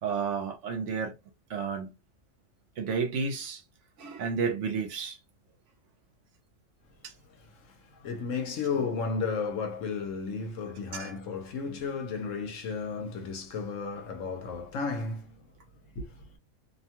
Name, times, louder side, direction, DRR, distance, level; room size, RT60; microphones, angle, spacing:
voice 1, 0.0-1.1 1.5-1.9 2.8-3.6 4.0-5.2 7.0-7.1 10.9-11.1, right 5 dB, 70° right, 1.0 m, -31 dB
voice 2, 8.0-15.4 16.0-16.4, left 5 dB, 75° left, 1.1 m, -33 dB
2.6 x 2.2 x 2.8 m
omnidirectional pair, 1.3 m